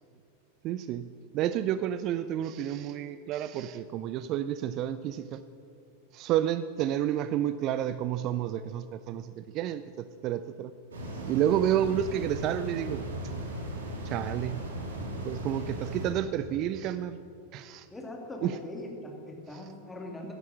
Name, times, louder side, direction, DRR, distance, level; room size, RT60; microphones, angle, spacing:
voice 1, 0.6-1.1 1.3-5.4 6.1-10.7 11.3-13.0 14.0-14.6 15.2-17.2 17.5-17.9 18.4-18.6 19.5-19.6, right 11 dB, 40° right, 13 dB, 0.4 m, -30 dB
sound 1, 10.9-16.1, right 1 dB, 65° right, 2.3 m, -37 dB
voice 2, 17.9-20.3, left 1 dB, 10° left, 1 dB, 2.3 m, -41 dB
14.0 x 11.0 x 6.3 m, 2.6 s
figure-of-eight pair, 90°, 0 cm